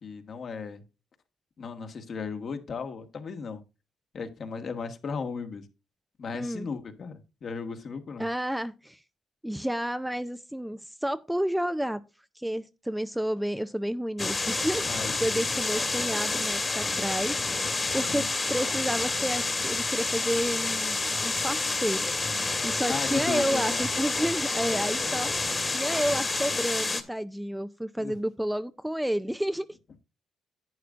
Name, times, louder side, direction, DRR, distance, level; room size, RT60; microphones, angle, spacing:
voice 1, 0.0-0.8 1.6-3.6 4.1-5.6 6.2-8.3 14.9-15.4 18.0-18.3 22.9-23.8 28.0-28.1, left 5 dB, 50° left, 1.6 m, -36 dB
voice 2, 6.3-6.7 8.2-9.0 9.4-12.0 12.4-14.8 15.2-17.4 17.9-21.0 21.2-22.0 22.3-25.3 25.7-29.7, equal, 5° right, 0.5 m, -30 dB
sound 1, 14.2-27.0, left 3 dB, 25° left, 1.7 m, -29 dB
11.0 x 9.0 x 2.5 m
cardioid pair, 90°, 0 cm